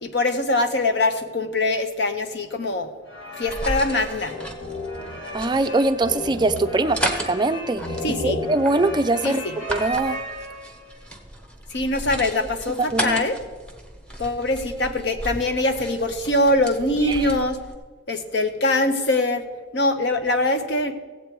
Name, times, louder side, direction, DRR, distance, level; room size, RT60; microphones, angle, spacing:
voice 1, 0.0-2.9 3.4-4.4 8.0-8.4 9.2-9.5 11.7-13.4 14.2-17.6 18.1-19.5 19.7-20.9, left 2 dB, 60° left, 8 dB, 0.9 m, -23 dB
sound 1, 3.1-10.9, left 1 dB, 85° left, 2.5 m, -34 dB
sound 2, 3.4-17.8, right 1 dB, 5° left, 0.9 m, -35 dB
voice 2, 5.3-7.8 8.1-9.4 9.7-10.2 12.9-13.2 17.1-17.3, right 2 dB, 20° right, 9 dB, 0.4 m, -22 dB
16.5 x 8.0 x 4.6 m, 1.4 s
head